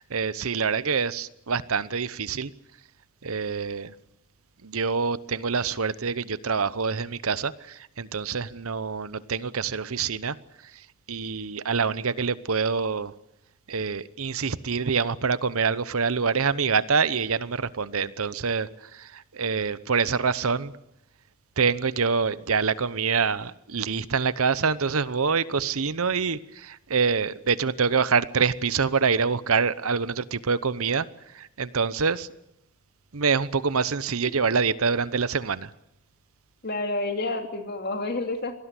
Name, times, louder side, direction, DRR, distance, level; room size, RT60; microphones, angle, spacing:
voice 1, 0.0-2.5 3.2-3.9 4.6-10.4 10.6-13.1 13.7-20.7 21.6-32.3 33.1-35.7, right 5 dB, 80° right, 0.9 m, -26 dB
voice 2, 36.6-38.5, left 2 dB, 45° left, 2.8 m, -29 dB
25.5 x 19.0 x 8.3 m
head